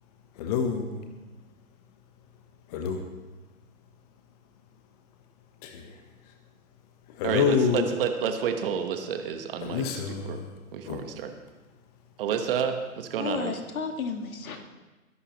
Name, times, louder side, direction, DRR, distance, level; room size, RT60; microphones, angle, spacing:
voice 1, 0.4-1.0 2.7-3.0 5.6-5.9 7.2-7.9 9.6-10.5 10.9-11.0, left 6 dB, 25° left, 5 dB, 1.0 m, -27 dB
voice 2, 7.2-10.4 10.7-11.3 12.2-13.5, right 7 dB, 40° right, 6 dB, 1.3 m, -30 dB
voice 3, 13.2-14.6, left 5 dB, 65° left, 5 dB, 1.9 m, -32 dB
21.0 x 11.0 x 3.0 m, 1.1 s
hypercardioid pair, 140°, 44 cm